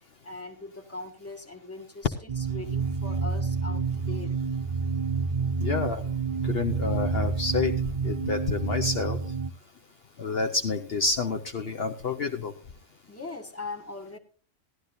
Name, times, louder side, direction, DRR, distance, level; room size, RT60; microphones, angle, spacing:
voice 1, 0.0-4.4 13.1-14.2, left 3 dB, 10° left, 2 dB, 1.5 m, -40 dB
sound 1, 2.3-9.5, right 5 dB, 45° right, 0.5 m, -29 dB
voice 2, 5.6-6.0 6.4-7.7 8.0-9.2 10.2-12.5, left 4 dB, 55° left, 5 dB, 1.0 m, -28 dB
17.5 x 12.0 x 2.6 m, 0.38 s
omnidirectional pair, 1.3 m